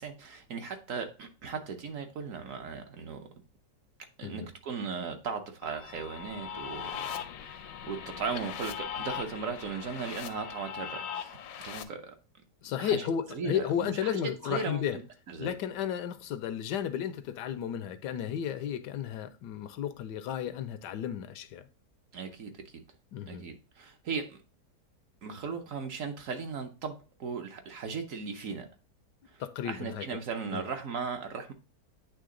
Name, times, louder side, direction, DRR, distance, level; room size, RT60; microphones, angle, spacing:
voice 1, 0.0-3.3 4.2-7.1 7.4-11.4 11.6-12.1 12.8-14.2 14.4-15.0 15.3-15.6 22.1-22.8 23.3-24.4 25.2-26.9 27.2-28.7 29.3-31.5, right 5 dB, 60° right, 1.0 m, -37 dB
sound 1, 5.6-11.8, left 8 dB, 70° left, 0.8 m, -40 dB
voice 2, 12.6-15.0 15.4-21.7 23.1-23.4 29.4-30.1 30.5-30.6, left 9 dB, 85° left, 1.2 m, -33 dB
8.6 x 3.3 x 3.7 m
omnidirectional pair, 1.8 m